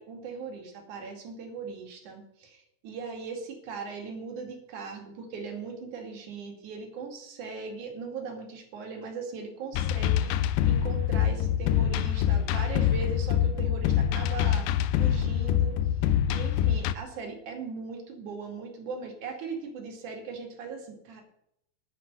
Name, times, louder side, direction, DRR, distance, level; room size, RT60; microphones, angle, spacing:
voice 1, 0.0-10.3 10.7-14.7 14.9-15.8 16.3-21.2, right 4 dB, 55° right, 3 dB, 3.6 m, -39 dB
sound 1, 9.7-16.9, left 10 dB, 80° left, 2.3 m, -25 dB
10.0 x 8.2 x 8.7 m, 0.77 s
omnidirectional pair, 4.5 m